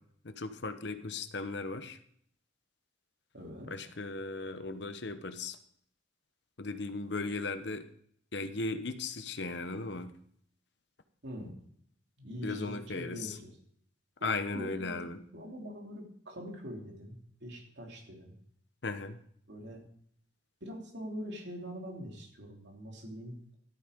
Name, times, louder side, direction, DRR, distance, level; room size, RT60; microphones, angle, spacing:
voice 1, 0.2-2.0 3.7-5.6 6.6-7.9 8.3-10.2 12.4-13.4 14.2-15.2 18.8-19.2, left 3 dB, 60° left, 10 dB, 0.9 m, -37 dB
voice 2, 3.3-3.9 11.2-11.6 12.2-13.6 14.2-18.3 19.5-19.8 20.6-23.4, equal, 60° right, 0 dB, 3.3 m, -43 dB
13.5 x 9.2 x 5.2 m, 0.65 s
head